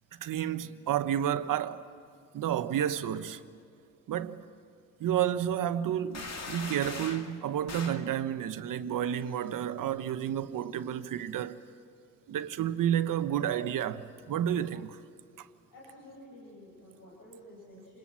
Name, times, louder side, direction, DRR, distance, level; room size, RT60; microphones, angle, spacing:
voice 1, 0.2-1.8 2.3-3.4 4.1-4.4 5.0-11.6 12.3-15.0, right 10 dB, 75° right, 1.1 m, -31 dB
sound 1, 6.1-7.3 7.7-8.0, left 4 dB, 50° left, 2.7 m, -40 dB
voice 2, 15.7-18.0, left 1 dB, 80° left, 7.2 m, -51 dB
28.5 x 20.5 x 7.4 m
cardioid pair, 65°, 33 cm